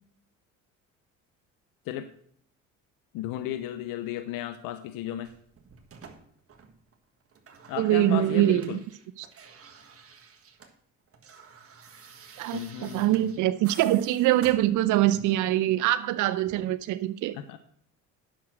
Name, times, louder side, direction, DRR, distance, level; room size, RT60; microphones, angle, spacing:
voice 1, 3.1-5.3 7.7-8.8 12.5-13.4 17.3-17.6, left 12 dB, 80° left, 11 dB, 0.8 m, -34 dB
sound 1, 5.2-6.9 7.2-10.8 11.0-15.5 16.4-16.6, right 5 dB, 45° right, 1.6 m, -50 dB
voice 2, 7.8-8.6 9.2-9.3 12.4-17.3, right 14 dB, 65° right, 13 dB, 0.6 m, -24 dB
10.0 x 6.2 x 6.3 m, 0.62 s
supercardioid pair, 75°, 33 cm